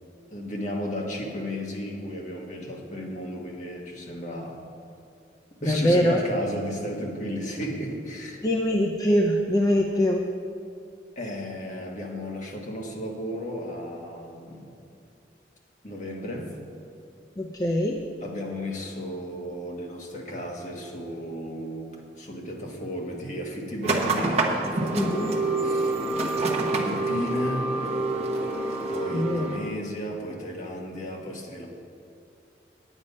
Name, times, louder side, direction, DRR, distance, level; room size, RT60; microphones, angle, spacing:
voice 1, 0.3-4.6 5.6-8.4 11.1-14.7 15.8-16.5 18.2-26.0 26.7-27.7 28.9-31.7, equal, 45° left, 0 dB, 1.4 m, -34 dB
voice 2, 5.6-6.2 8.4-10.2 17.4-18.0 24.9-25.3 29.1-29.7, equal, 20° left, 0 dB, 0.5 m, -23 dB
sound 1, 23.8-29.6, right 2 dB, 35° right, 1.0 m, -26 dB
9.6 x 8.9 x 5.4 m, 2.5 s
head